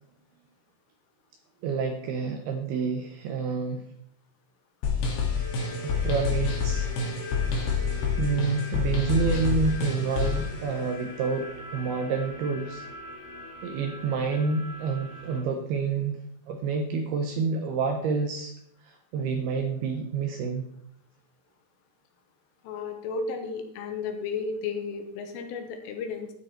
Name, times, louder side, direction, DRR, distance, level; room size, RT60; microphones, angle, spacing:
voice 1, 1.6-3.8 5.8-6.9 8.2-12.8 13.6-16.2 16.5-18.5 18.8-20.7, right 5 dB, 80° right, 4 dB, 2.3 m, -28 dB
sound 1, 4.8-10.5, left 5 dB, 60° left, 4.1 m, -27 dB
sound 2, 5.3-15.4, left 2 dB, 5° left, 3.6 m, -41 dB
voice 2, 22.6-26.3, left 4 dB, 85° left, 5 dB, 4.0 m, -33 dB
12.0 x 9.2 x 4.4 m, 0.74 s
omnidirectional pair, 5.8 m